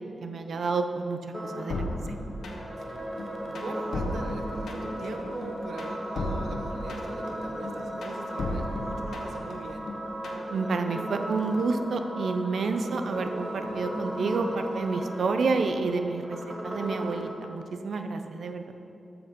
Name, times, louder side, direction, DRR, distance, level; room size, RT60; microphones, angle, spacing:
voice 1, 0.2-1.8 10.5-18.8, right 4 dB, 70° right, 7 dB, 0.6 m, -29 dB
sound 1, 1.3-17.3, equal, 10° right, 1.3 m, -36 dB
sound 2, 1.7-2.8 3.2-5.1 5.4-7.3 7.6-9.5 9.9-10.5, left 1 dB, 90° left, 1.2 m, -34 dB
voice 2, 2.8-9.9, right 3 dB, 85° right, 4 dB, 1.0 m, -42 dB
13.5 x 6.0 x 5.2 m, 2.9 s
wide cardioid pair, 120°, 0 cm